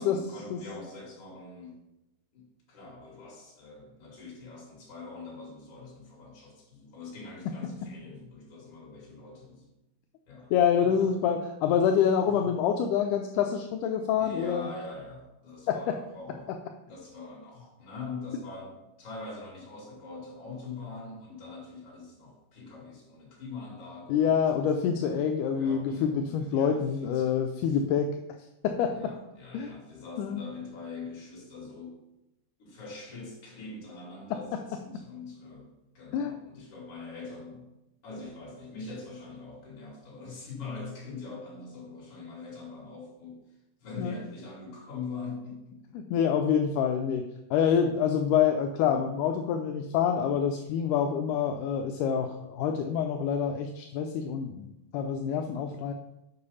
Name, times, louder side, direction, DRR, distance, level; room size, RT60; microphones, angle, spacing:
voice 1, 0.0-1.8 2.3-9.7 10.3-10.5 10.8-11.1 12.3-12.5 14.2-16.5 16.8-24.7 25.5-27.8 28.9-32.0 32.6-37.7 38.0-43.4 43.8-45.8, left 4 dB, 45° left, -4 dB, 3.3 m, -43 dB
voice 2, 10.5-14.7 15.7-15.9 24.1-28.2 28.6-28.9 29.5-29.7 30.2-30.4 36.1-36.4 44.0-44.2 46.0-47.2 47.5-54.7 54.9-55.9, left 8 dB, 80° left, 4 dB, 2.1 m, -26 dB
6.8 x 5.6 x 5.5 m, 0.92 s
omnidirectional pair, 3.7 m